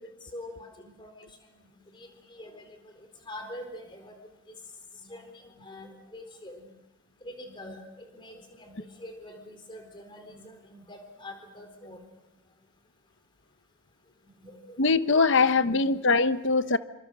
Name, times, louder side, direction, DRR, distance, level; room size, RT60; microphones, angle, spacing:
voice 1, 0.0-4.1 5.0-6.7 7.2-12.0 14.2-14.8 15.4-16.0 16.6-16.7, left 1 dB, 25° left, 4.0 m, -45 dB
voice 2, 14.8-16.8, left 4 dB, 60° left, 0.9 m, -22 dB
27.5 x 26.0 x 6.3 m
head